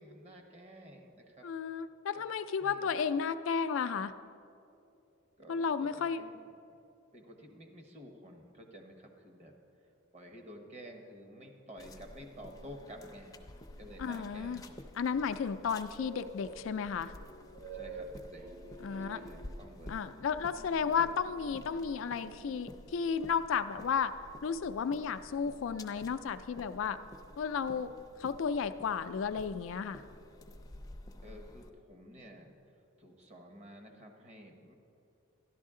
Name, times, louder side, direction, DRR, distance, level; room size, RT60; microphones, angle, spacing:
voice 1, 0.0-1.5 2.1-2.2 2.6-2.9 5.4-6.4 7.1-9.5 10.1-13.3 13.8-14.6 17.7-18.5 19.0-20.0 31.2-32.6 33.0-34.7, equal, 35° right, 3 dB, 1.1 m, -51 dB
voice 2, 1.4-4.1 5.5-6.2 14.0-14.6 15.0-17.1 18.8-19.2 19.9-24.1 24.4-27.0 27.4-27.9 28.2-30.0, left 6 dB, 70° left, 11 dB, 0.4 m, -33 dB
sound 1, 11.8-31.7, left 1 dB, 20° left, 0.5 m, -52 dB
sound 2, 16.0-22.8, right 3 dB, 75° right, 1.1 m, -50 dB
12.5 x 11.5 x 3.7 m, 2.7 s
head